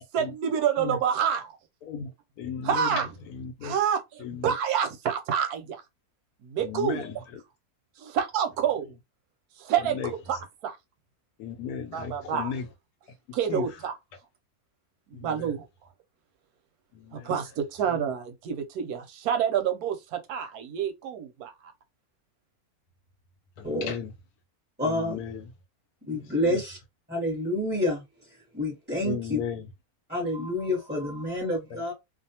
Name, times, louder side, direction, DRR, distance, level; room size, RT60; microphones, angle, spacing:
voice 1, 0.0-1.6 2.6-3.1 3.6-5.8 6.4-7.1 8.0-8.9 9.6-10.8 11.9-12.5 13.3-14.0 15.1-15.7 17.1-21.7, right 8 dB, 90° right, 1.1 m, -28 dB
voice 2, 2.4-3.7 4.2-4.5 6.6-7.4 9.8-10.1 11.4-12.7 13.5-13.6 15.1-15.5 16.9-17.3 23.6-24.1 24.8-25.5 26.1-26.6 29.0-29.7 31.7-31.8, left 7 dB, 85° left, 1.1 m, -35 dB
voice 3, 24.8-25.2 26.1-26.8 27.1-28.0 28.5-29.4 30.1-31.9, left 1 dB, 10° right, 1.0 m, -28 dB
2.6 x 2.4 x 2.7 m
omnidirectional pair, 1.6 m